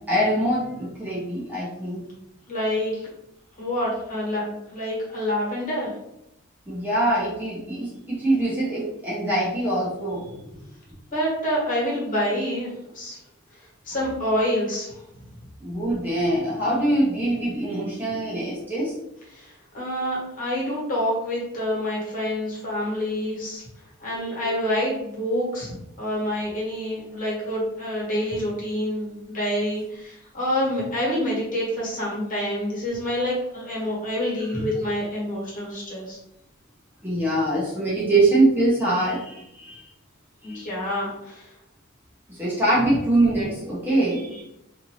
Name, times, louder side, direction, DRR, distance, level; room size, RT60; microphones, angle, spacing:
voice 1, 0.1-2.1 6.7-10.4 15.6-19.0 24.1-24.5 37.0-39.9 40.4-40.7 42.3-44.4, right 1 dB, 10° right, -8 dB, 0.6 m, -23 dB
voice 2, 2.5-3.1 3.6-5.9 11.1-13.2 13.8-15.0 19.3-23.6 24.0-36.2 40.4-41.5, equal, 40° left, -5 dB, 1.3 m, -27 dB
2.6 x 2.5 x 3.0 m, 0.82 s
head